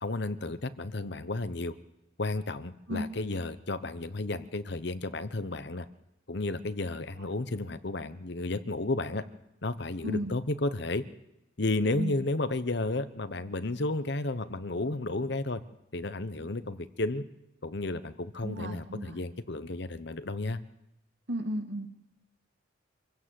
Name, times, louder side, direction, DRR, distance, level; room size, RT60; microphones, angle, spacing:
voice 1, 0.0-1.7 2.2-5.9 6.3-9.2 9.6-11.0 11.6-15.6 15.9-17.2 17.6-20.6, left 2 dB, 55° left, 12 dB, 1.0 m, -32 dB
voice 2, 10.0-10.4 12.0-12.2 18.4-19.2 21.3-21.9, equal, 60° right, 5 dB, 2.3 m, -34 dB
25.5 x 16.5 x 7.7 m, 0.90 s
head